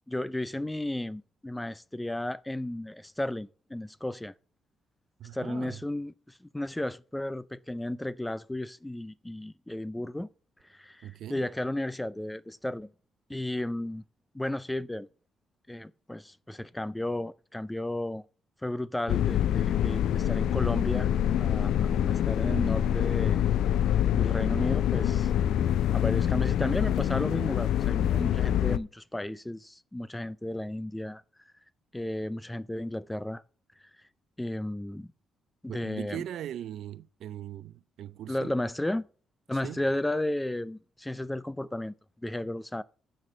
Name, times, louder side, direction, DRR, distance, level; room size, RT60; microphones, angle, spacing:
voice 1, 0.1-4.3 5.3-10.3 10.6-12.9 13.3-14.0 14.3-15.1 15.7-18.2 18.6-21.1 21.4-23.4 24.1-25.3 25.9-31.2 31.9-33.4 34.4-35.1 35.6-36.2 38.3-39.1 39.5-41.9 42.2-42.8, left 1 dB, 10° left, 0.4 m, -33 dB
voice 2, 5.2-5.8 11.0-11.5 35.7-38.5 39.6-39.8, right 11 dB, 75° right, 0.4 m, -40 dB
sound 1, 19.1-28.8, left 10 dB, 80° left, 0.4 m, -25 dB
13.0 x 4.3 x 6.1 m
cardioid pair, 90°, 0 cm